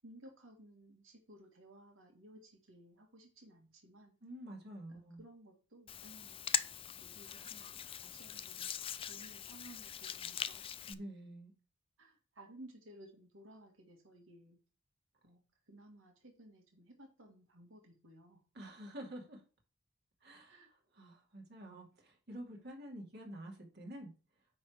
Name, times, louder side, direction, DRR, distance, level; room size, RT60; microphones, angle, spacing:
voice 1, 0.0-4.2 4.9-6.4 7.0-10.6 12.0-14.6 15.2-15.4 15.7-18.4 20.5-20.7, right 1 dB, 80° right, 2 dB, 1.9 m, -58 dB
voice 2, 4.2-5.2 10.9-11.5 18.5-19.4 20.2-20.6 20.9-24.1, right 1 dB, 55° right, 0 dB, 2.4 m, -48 dB
Hands, 5.9-10.9, left 9 dB, 25° left, 0.4 m, -41 dB
9.4 x 3.5 x 6.3 m, 0.36 s
head